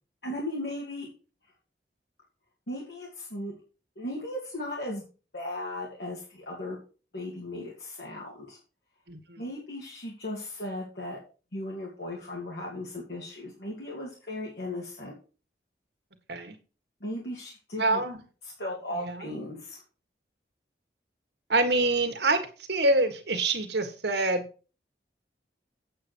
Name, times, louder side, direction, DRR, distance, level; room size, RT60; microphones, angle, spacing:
voice 1, 0.2-1.1 2.7-3.5 4.0-5.0 5.3-6.8 7.1-8.6 9.4-11.2 11.5-15.1 17.0-18.0 18.4-19.8, left 1 dB, 70° left, -3 dB, 2.5 m, -36 dB
voice 2, 9.1-9.4 16.3-16.5 17.8-18.2 18.9-19.2 21.5-22.4 22.7-24.4, right 2 dB, 70° right, 7 dB, 1.7 m, -26 dB
8.5 x 7.8 x 4.5 m, 0.35 s
head